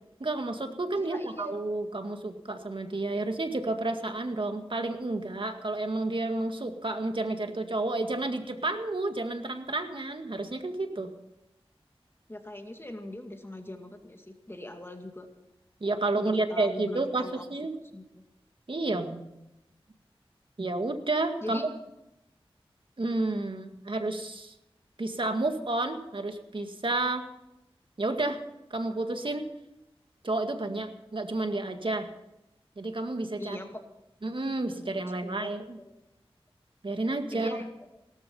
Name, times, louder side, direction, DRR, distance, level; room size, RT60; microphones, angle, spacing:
voice 1, 0.2-11.1 15.8-17.8 18.7-19.2 20.6-21.7 23.0-24.5 25.0-27.3 28.0-28.4 28.7-29.5 30.2-32.1 32.8-33.6 34.2-35.8 36.8-37.6, right 2 dB, 55° right, 6 dB, 2.0 m, -30 dB
voice 2, 1.0-1.5 12.3-15.3 16.1-17.4 17.9-18.2 21.4-21.7 33.4-33.8 35.2-35.5 37.3-37.7, left 1 dB, 25° left, 5 dB, 2.2 m, -41 dB
17.5 x 13.5 x 5.6 m, 0.90 s
wide cardioid pair, 50°, 10 cm